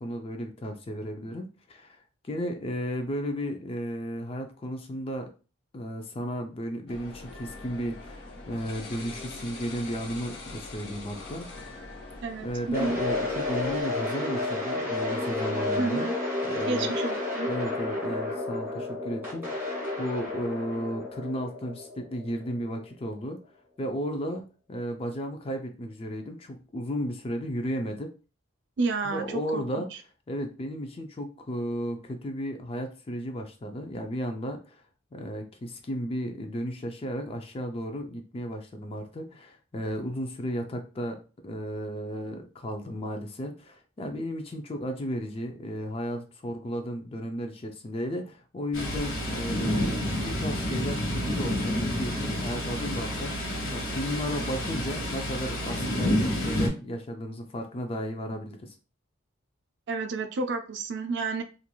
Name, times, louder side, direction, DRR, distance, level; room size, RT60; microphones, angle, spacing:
voice 1, 0.0-5.3 5.7-11.8 12.4-16.1 16.4-16.9 17.5-19.7 20.0-23.4 23.8-28.1 29.1-29.9 30.3-34.8 35.1-50.0 50.2-58.7, equal, 25° left, 5 dB, 0.3 m, -34 dB
sound 1, 6.9-13.8, left 2 dB, 50° left, 0.7 m, -43 dB
voice 2, 12.2-13.0 15.8-16.1 16.7-17.5 28.8-30.0 59.9-61.4, right 3 dB, 55° right, 7 dB, 0.3 m, -31 dB
sound 2, 12.7-22.8, left 2 dB, 10° right, 1.5 m, -31 dB
Thunder, 48.7-56.7, left 1 dB, 80° left, 1.1 m, -29 dB
3.0 x 2.5 x 2.2 m, 0.34 s
head